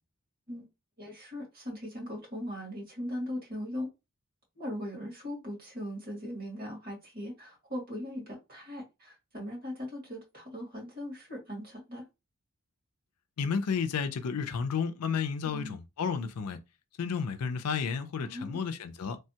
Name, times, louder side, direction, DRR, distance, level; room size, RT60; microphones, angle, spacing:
voice 1, 1.0-3.9 4.5-12.0 15.4-15.7 18.2-18.6, left 1 dB, 40° right, 1.8 m, -39 dB
voice 2, 13.4-16.6 17.0-19.2, left 6 dB, 85° left, 0.4 m, -32 dB
3.3 x 2.2 x 2.8 m
head